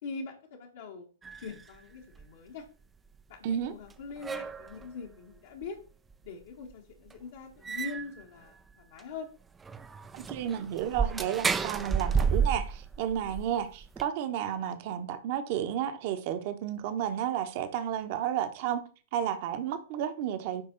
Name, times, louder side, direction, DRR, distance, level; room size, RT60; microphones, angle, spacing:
voice 1, 0.0-1.1 1.4-2.6 3.3-5.8 6.2-9.3, left 4 dB, 60° left, 1.3 m, -42 dB
sound 1, 1.2-1.8 2.2-2.3 3.6-3.7 3.9-4.9 5.6-5.7 6.1-6.2 6.7-6.8 7.1-7.2 7.6-8.2 8.7-8.8 9.0-9.1 9.6-14.1, right 6 dB, 15° right, 0.4 m, -31 dB
voice 2, 3.4-3.7 10.1-18.8 19.1-20.6, right 10 dB, 45° right, 1.1 m, -32 dB
9.9 x 3.5 x 4.0 m
hypercardioid pair, 115°, 0 cm